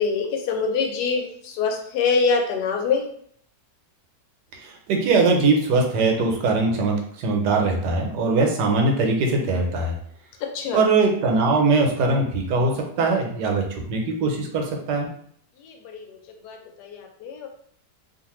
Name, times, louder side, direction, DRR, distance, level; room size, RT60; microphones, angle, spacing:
voice 1, 0.0-3.0 10.5-10.8 15.6-16.2 16.4-17.5, left 5 dB, 80° left, 3 dB, 1.2 m, -25 dB
voice 2, 4.5-9.9 10.7-15.1, right 3 dB, 85° right, 2 dB, 1.3 m, -21 dB
2.8 x 2.5 x 3.0 m, 0.63 s
omnidirectional pair, 1.8 m